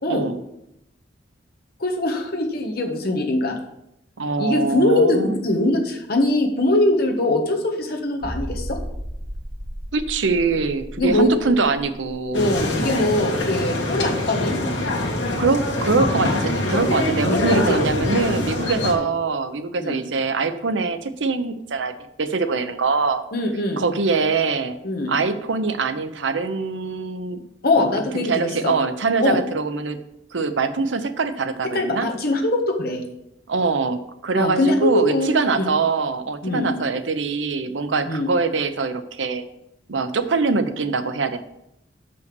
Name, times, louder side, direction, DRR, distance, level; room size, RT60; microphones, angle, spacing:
voice 1, 0.1-0.4 4.2-5.4 9.9-12.5 15.4-23.2 23.8-24.8 25.1-27.4 27.8-30.0 30.3-32.1 33.5-39.4 39.9-41.4, right 4 dB, 90° right, 10 dB, 0.7 m, -23 dB
voice 2, 1.8-3.6 4.4-8.8 11.0-11.3 12.3-14.7 17.3-17.8 19.0-19.1 19.8-20.0 23.3-23.8 24.8-25.1 27.6-28.7 29.2-29.4 31.7-33.0 34.3-35.3 36.4-36.7 38.1-38.3, left 1 dB, 55° left, 2 dB, 1.4 m, -22 dB
sound 1, 8.2-13.7 14.0-14.1 14.6-14.7, equal, 75° right, 2.2 m, -35 dB
sound 2, 12.3-18.9, left 1 dB, 85° left, 1.7 m, -24 dB
6.6 x 5.6 x 6.8 m, 0.83 s
head